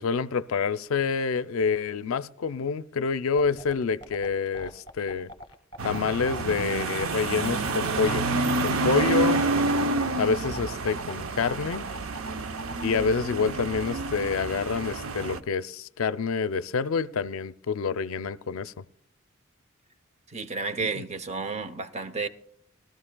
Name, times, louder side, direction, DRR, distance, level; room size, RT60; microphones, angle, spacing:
voice 1, 0.0-5.3 5.8-8.3 8.6-9.5 10.2-11.9 12.8-18.8 20.8-20.9, left 5 dB, 80° left, 0.4 m, -27 dB
sound 1, 3.4-12.8, equal, 25° left, 1.3 m, -41 dB
sound 2, 5.8-15.4, right 3 dB, 80° right, 0.7 m, -28 dB
voice 2, 20.3-22.3, right 4 dB, 30° right, 0.6 m, -31 dB
19.0 x 13.0 x 2.2 m
head